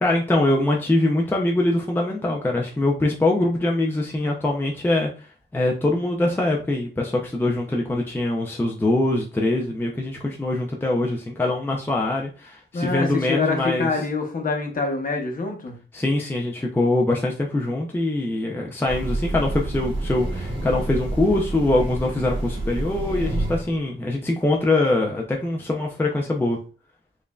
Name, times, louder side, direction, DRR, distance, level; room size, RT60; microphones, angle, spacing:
voice 1, 0.0-5.1 5.5-13.9 15.9-26.6, left 2 dB, 10° left, 0.4 m, -23 dB
voice 2, 12.7-15.8, left 3 dB, 45° left, 0.9 m, -25 dB
Train, 18.9-23.8, right 1 dB, 30° right, 1.2 m, -28 dB
5.1 x 2.5 x 2.3 m
wide cardioid pair, 145°, 20 cm